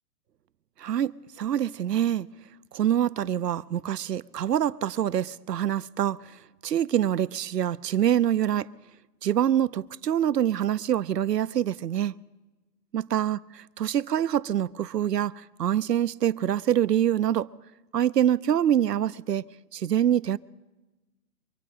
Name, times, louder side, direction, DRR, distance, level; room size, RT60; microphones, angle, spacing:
voice 1, 0.8-2.3 2.7-6.2 6.6-8.7 9.2-12.1 12.9-13.4 13.8-17.5 17.9-19.4 19.7-20.4, right 10 dB, 80° right, 0.8 m, -25 dB
25.5 x 8.6 x 5.0 m
hypercardioid pair, 180°, 48 cm